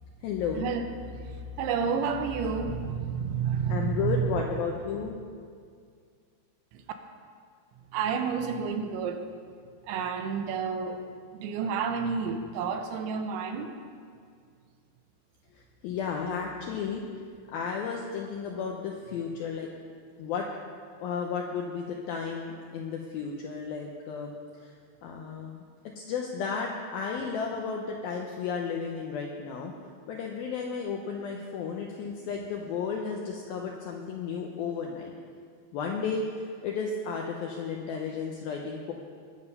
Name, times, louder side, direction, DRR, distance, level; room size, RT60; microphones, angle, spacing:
voice 1, 0.2-0.7 3.7-5.1 15.5-17.0 17.5-19.7 20.2-20.5 21.0-24.3 24.6-24.7 25.0-29.7 30.1-35.1 35.7-38.9, left 6 dB, 85° left, 0 dB, 2.1 m, -33 dB
voice 2, 1.6-4.2 6.7-6.8 7.9-9.3 9.9-11.0 11.3-13.7, right 6 dB, 85° right, 6 dB, 3.1 m, -30 dB
21.0 x 7.1 x 5.5 m, 2.2 s
omnidirectional pair, 5.3 m